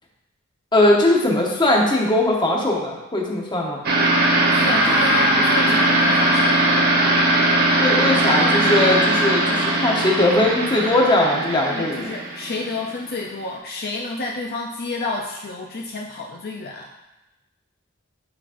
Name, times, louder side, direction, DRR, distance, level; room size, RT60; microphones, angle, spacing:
voice 1, 0.7-3.8 7.8-12.1, left 1 dB, 20° left, -1 dB, 0.9 m, -19 dB
sound 1, 3.8-12.9, right 1 dB, 50° right, 0.8 m, -19 dB
voice 2, 4.1-6.7 11.7-16.9, left 2 dB, 50° left, -1 dB, 0.5 m, -30 dB
9.4 x 4.0 x 2.5 m, 1.0 s
head